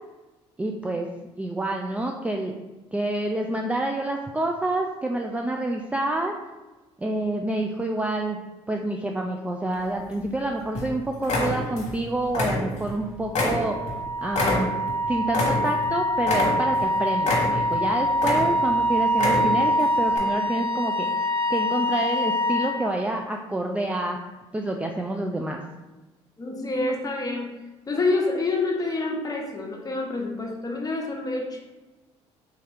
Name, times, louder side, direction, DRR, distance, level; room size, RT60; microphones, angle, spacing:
voice 1, 0.6-1.1 1.4-2.5 2.9-6.3 7.0-8.4 8.7-13.8 14.2-14.7 15.1-21.1 21.5-24.2 24.5-25.6, right 2 dB, 10° right, 1 dB, 0.3 m, -28 dB
sound 1, 9.7-10.4 10.8-10.9 11.2-12.0 12.3-13.0 13.3-15.9 16.2-16.9 17.2-17.8 18.1-18.7 19.1-19.7 20.1-20.2, left 2 dB, 55° left, 1.2 m, -26 dB
Wind instrument woodwind instrument, 13.4-22.8, equal, 40° right, 0.7 m, -25 dB
voice 2, 26.4-27.6 27.9-31.6, left 3 dB, 25° left, -1 dB, 1.0 m, -27 dB
3.5 x 2.8 x 3.3 m, 1.1 s
hypercardioid pair, 60°, 14 cm